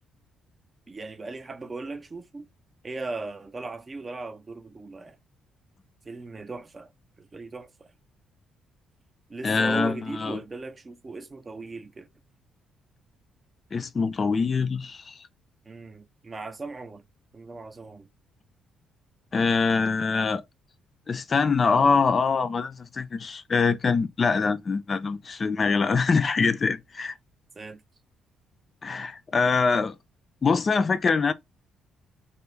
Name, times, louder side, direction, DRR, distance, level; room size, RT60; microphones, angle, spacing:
voice 1, 0.9-2.5 2.8-5.2 6.0-6.9 7.2-7.9 9.3-12.1 15.7-17.0 17.3-18.1 27.6-27.8, right 3 dB, 30° right, 0.5 m, -38 dB
voice 2, 9.4-10.4 13.7-15.2 19.3-20.4 21.1-27.1 28.8-30.0 30.4-31.3, left 4 dB, 40° left, 0.4 m, -24 dB
2.2 x 2.0 x 3.0 m
supercardioid pair, 75°, 0 cm